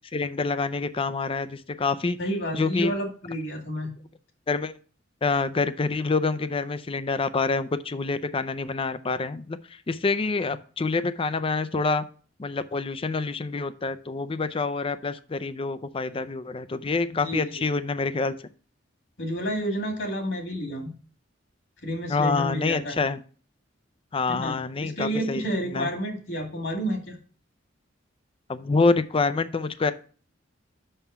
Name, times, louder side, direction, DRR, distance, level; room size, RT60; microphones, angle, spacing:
voice 1, 0.1-2.2 2.5-2.9 4.5-4.8 5.2-9.6 9.9-12.0 12.4-18.4 22.1-23.2 24.1-25.9 28.5-29.9, left 4 dB, 30° left, 13 dB, 0.5 m, -26 dB
voice 2, 2.2-3.9 17.1-17.6 19.2-20.9 21.8-23.0 24.3-27.2, equal, 65° left, 2 dB, 2.3 m, -30 dB
6.0 x 5.6 x 5.6 m, 0.41 s
head